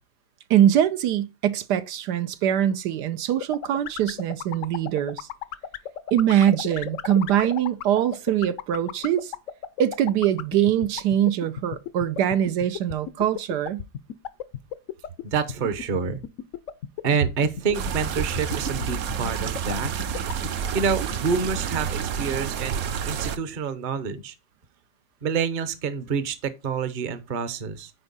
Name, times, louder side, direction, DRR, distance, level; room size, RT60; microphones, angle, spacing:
voice 1, 0.5-5.3 6.1-9.3 9.8-13.9, right 10 dB, 80° right, 1.2 m, -23 dB
sound 1, 3.4-20.5, left 10 dB, 65° left, 0.8 m, -32 dB
voice 2, 15.2-16.2 17.0-19.9 20.7-24.3 25.2-27.9, right 5 dB, 40° right, 0.8 m, -27 dB
sound 2, 17.7-23.4, right 7 dB, 65° right, 1.1 m, -29 dB
9.6 x 4.5 x 4.0 m
omnidirectional pair, 1.8 m